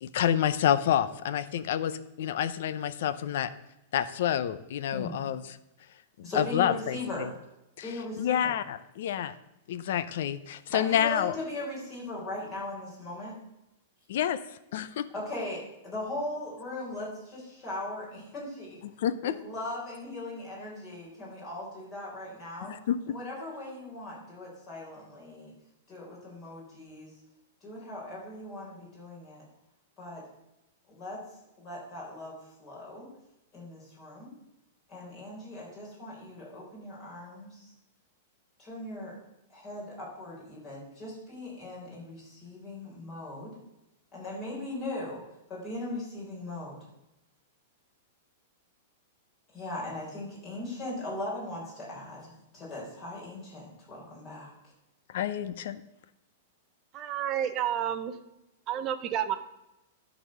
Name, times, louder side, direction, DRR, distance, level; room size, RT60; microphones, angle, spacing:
voice 1, 0.0-3.5 3.9-5.4 6.2-7.3 7.8-9.3 9.7-11.4 14.1-14.4 14.7-15.0 18.8-19.3 22.6-23.1 55.1-55.8, left 10 dB, 60° left, 14 dB, 0.6 m, -28 dB
voice 2, 6.2-7.3 7.8-8.5 10.7-13.4 15.1-18.8 19.2-22.8 23.1-25.5 25.9-27.1 27.6-29.4 30.0-30.3 30.9-31.2 31.6-32.3 32.6-33.1 33.5-34.3 34.9-37.7 38.6-39.2 39.5-43.6 44.1-45.2 45.5-46.8 49.5-54.5, left 2 dB, 20° left, -5 dB, 3.8 m, -39 dB
voice 3, 56.9-58.1 58.7-59.4, right 10 dB, 25° right, 9 dB, 0.6 m, -30 dB
12.0 x 4.1 x 6.4 m, 0.89 s
supercardioid pair, 170°, 0 cm